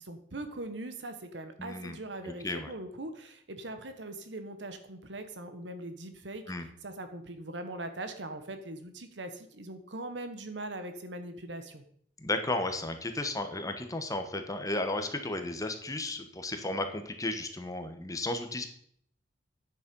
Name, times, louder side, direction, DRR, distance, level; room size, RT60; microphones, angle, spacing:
voice 1, 0.0-6.4 6.8-11.8, right 2 dB, 75° right, 8 dB, 1.3 m, -41 dB
voice 2, 1.6-2.0 2.2-2.7 6.5-6.7 12.2-18.7, left 2 dB, 20° left, 6 dB, 1.2 m, -34 dB
9.5 x 7.3 x 5.4 m, 0.64 s
head